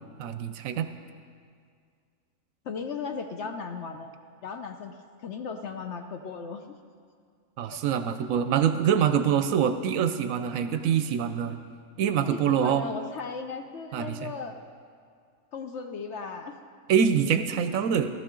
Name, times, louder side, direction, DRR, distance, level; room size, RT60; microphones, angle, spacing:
voice 1, 0.2-0.9 7.6-11.6 12.0-12.9 13.9-14.3 16.9-18.1, right 8 dB, 70° right, 9 dB, 0.9 m, -25 dB
voice 2, 2.6-4.1 4.4-6.7 7.7-7.8 12.2-14.6 15.5-16.6, left 5 dB, 60° left, 6 dB, 0.8 m, -37 dB
14.0 x 13.5 x 3.7 m, 2.1 s
omnidirectional pair, 1.6 m